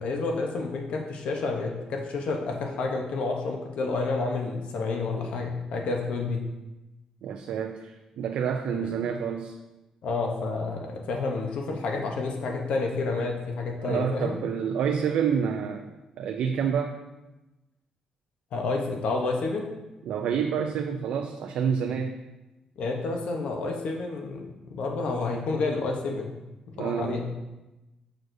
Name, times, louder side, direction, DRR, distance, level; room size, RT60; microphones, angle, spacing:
voice 1, 0.0-6.4 8.7-8.9 10.0-14.4 18.5-19.7 22.8-24.4 24.7-26.4 26.8-27.2, left 3 dB, 65° left, 1 dB, 0.8 m, -29 dB
voice 2, 7.2-9.5 13.8-15.9 16.2-17.0 20.1-22.1 26.8-27.2, right 7 dB, 75° right, 4 dB, 0.4 m, -28 dB
6.4 x 6.2 x 2.6 m, 1.0 s
cardioid pair, 175°, 2 cm